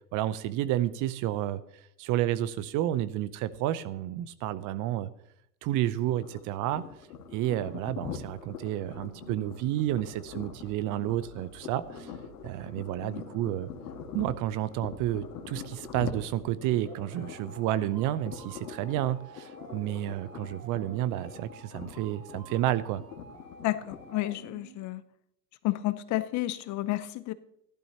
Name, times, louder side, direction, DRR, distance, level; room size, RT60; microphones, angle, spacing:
voice 1, 0.1-1.6 2.0-5.1 5.6-6.9 7.3-12.1 12.4-13.7 14.1-23.0, right 13 dB, 40° right, 15 dB, 0.7 m, -30 dB
sound 1, 6.0-24.5, left 7 dB, 70° left, 1.9 m, -44 dB
sound 2, 8.8-24.8, right 5 dB, 70° right, 3.7 m, -52 dB
voice 2, 23.6-25.0 25.6-27.3, left 16 dB, 35° left, 15 dB, 0.7 m, -31 dB
15.0 x 12.0 x 2.9 m, 0.73 s
hypercardioid pair, 90°, 49 cm